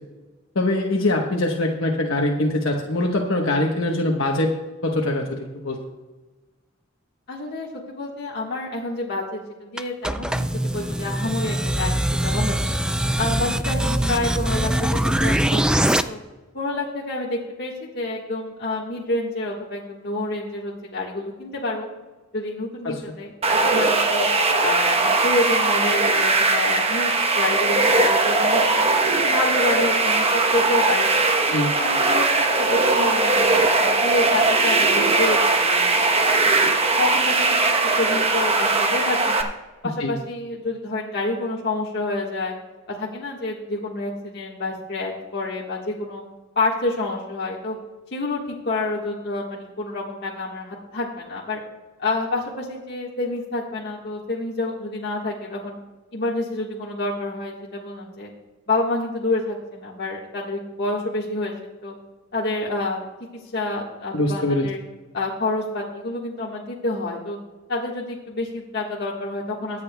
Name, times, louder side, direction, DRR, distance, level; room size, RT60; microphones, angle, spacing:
voice 1, 0.5-4.5 4.8-5.8 22.8-23.0 31.5-31.7 40.0-40.1 64.1-64.6, left 1 dB, 80° left, 0 dB, 1.1 m, -23 dB
voice 2, 7.3-12.7 13.2-16.2 16.5-21.9 22.3-24.3 24.6-28.9 29.2-31.1 31.5-33.5 33.8-36.1 36.3-36.5 37.0-39.5 39.8-42.5 42.9-46.2 46.5-47.8 48.1-51.6 52.0-55.8 56.1-58.3 58.7-61.9 62.3-63.1 63.5-64.8 65.1-67.4 67.7-69.8, left 2 dB, 55° left, -4 dB, 1.5 m, -28 dB
sound 1, 9.8-16.0, right 1 dB, 5° right, 0.3 m, -22 dB
sound 2, 23.4-39.4, right 3 dB, 30° right, 1.0 m, -20 dB
23.0 x 8.5 x 2.3 m, 1.2 s
head